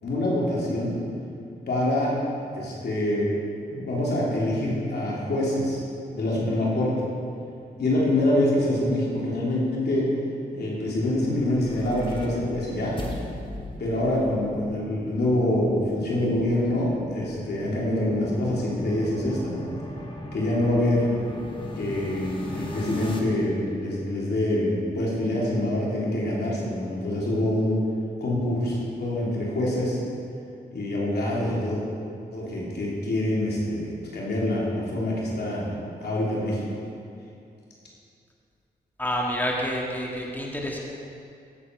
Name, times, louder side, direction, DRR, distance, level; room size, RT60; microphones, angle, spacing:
voice 1, 0.0-0.9 1.7-2.1 2.6-3.4 3.7-5.8 6.1-7.0 7.8-10.1 10.5-13.0 13.8-19.7 20.3-21.1 21.7-27.8 28.2-30.0 30.7-31.8 32.3-35.7 36.0-36.6, left 1 dB, 75° left, -5 dB, 3.3 m, -25 dB
sound 1, 11.1-23.2, left 1 dB, 30° left, 1.9 m, -38 dB
voice 2, 39.0-40.8, equal, 10° left, -2 dB, 2.0 m, -28 dB
16.0 x 7.5 x 4.7 m, 2.4 s
cardioid pair, 55°, 17 cm